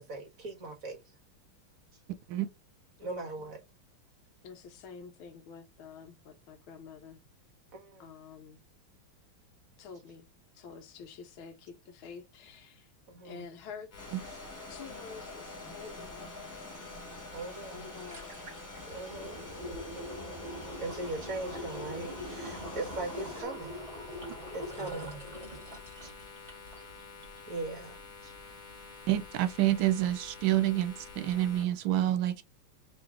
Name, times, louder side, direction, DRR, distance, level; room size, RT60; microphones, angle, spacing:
voice 1, 0.1-1.0 3.0-3.6 7.7-8.1 13.1-13.5 17.3-17.9 18.9-19.4 20.8-23.8 24.5-25.2 26.0-26.1 26.8-27.1 27.5-28.5, right 2 dB, 45° right, 1.6 m, -40 dB
voice 2, 3.0-3.6 4.4-7.2 8.0-8.6 9.8-10.3 10.5-12.9 13.2-13.9 14.7-16.7 17.4-18.4 22.6-22.9, left 6 dB, 75° left, 1.6 m, -48 dB
sound 1, 13.9-31.6, left 4 dB, 50° left, 1.3 m, -49 dB
sound 2, 14.0-23.4, left 2 dB, 20° left, 0.5 m, -47 dB
sound 3, 17.4-17.5 17.8-26.9 27.2-27.3, equal, 20° right, 1.7 m, -42 dB
voice 3, 29.1-32.4, right 13 dB, 75° right, 1.3 m, -28 dB
3.8 x 3.0 x 3.6 m
omnidirectional pair, 2.3 m